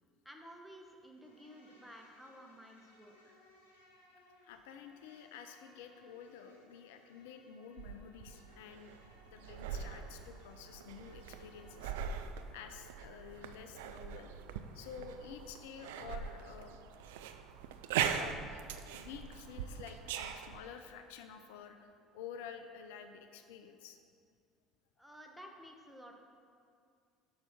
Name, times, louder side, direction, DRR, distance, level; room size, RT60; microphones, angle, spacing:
voice 1, 0.2-3.4 25.0-26.2, equal, ahead, 1 dB, 1.2 m, -53 dB
Insect, 1.1-12.5, left 2 dB, 90° left, 1.0 m, -65 dB
voice 2, 4.4-9.0 9.3-11.9 12.5-14.3 14.7-16.8 18.1-18.6 18.9-24.0, left 7 dB, 75° left, 7 dB, 0.5 m, -50 dB
sound 1, 7.8-20.6, right 8 dB, 75° right, 0.4 m, -41 dB
6.8 x 5.5 x 5.8 m, 2.3 s
hypercardioid pair, 65°, 0 cm